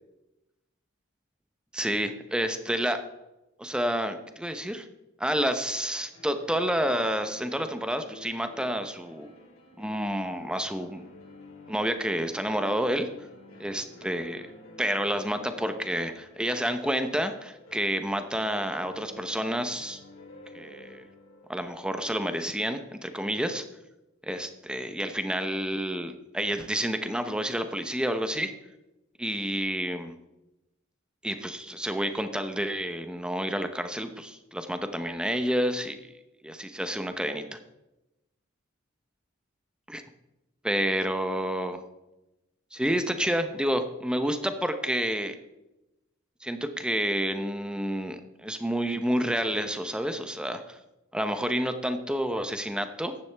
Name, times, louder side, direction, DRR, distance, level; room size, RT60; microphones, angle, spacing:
voice 1, 1.7-3.0 3.6-4.9 5.2-9.3 9.8-11.1 11.7-13.1 13.6-14.5 14.8-20.0 20.5-21.0 21.5-23.6 24.2-28.5 29.2-30.1 31.2-36.0 36.4-37.6 39.9-40.0 40.6-41.8 42.7-45.3 46.4-50.8 51.1-53.1, equal, 5° right, 8 dB, 0.8 m, -29 dB
sound 1, 6.1-22.8, left 1 dB, 85° left, 3.5 m, -50 dB
14.5 x 10.5 x 3.5 m, 0.97 s
head